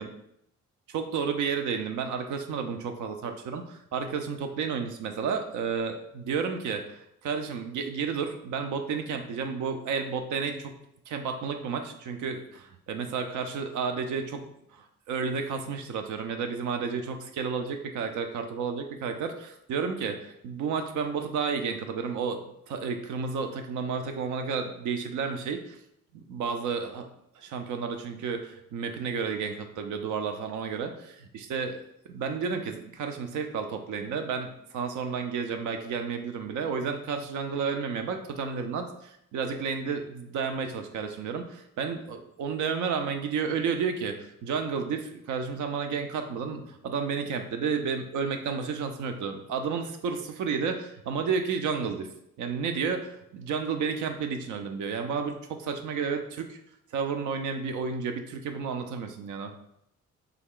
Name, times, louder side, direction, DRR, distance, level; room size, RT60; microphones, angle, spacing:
voice 1, 0.9-10.7 11.1-14.5 14.7-22.4 22.7-25.8 26.1-27.1 27.4-31.8 32.1-52.1 52.4-56.6 56.9-59.5, right 5 dB, 75° right, 6 dB, 0.5 m, -31 dB
3.4 x 2.1 x 3.6 m, 0.76 s
cardioid pair, 90°, 30 cm